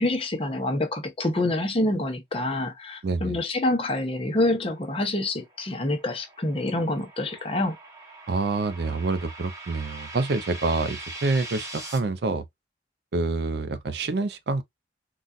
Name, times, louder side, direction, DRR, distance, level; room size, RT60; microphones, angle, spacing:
voice 1, 0.0-7.8, left 1 dB, 30° left, 0.7 m, -26 dB
voice 2, 3.0-3.4 8.3-12.4 13.1-14.6, right 3 dB, 60° right, 0.4 m, -27 dB
sound 1, 5.2-12.0, right 2 dB, 15° right, 1.0 m, -42 dB
3.9 x 2.3 x 2.4 m
head